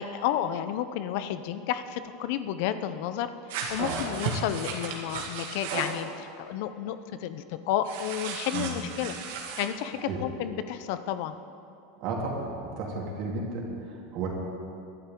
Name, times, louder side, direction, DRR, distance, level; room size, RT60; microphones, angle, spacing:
voice 1, 0.0-3.3 3.7-9.1 9.6-11.3, left 10 dB, 65° left, 11 dB, 0.7 m, -31 dB
sound 1, 3.5-6.0 7.8-9.7, right 5 dB, 75° right, 2.2 m, -35 dB
voice 2, 12.0-12.5 12.8-14.3, right 3 dB, 55° right, -2 dB, 3.5 m, -33 dB
22.0 x 11.5 x 3.9 m, 2.5 s
hypercardioid pair, 110°, 0 cm